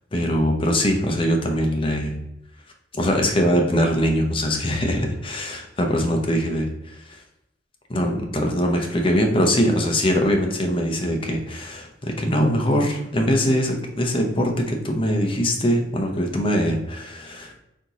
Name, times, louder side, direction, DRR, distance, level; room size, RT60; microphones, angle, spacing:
voice 1, 0.1-2.2 2.9-7.2 7.9-17.6, equal, 30° left, 2 dB, 0.8 m, -22 dB
4.3 x 4.0 x 3.0 m, 0.86 s
head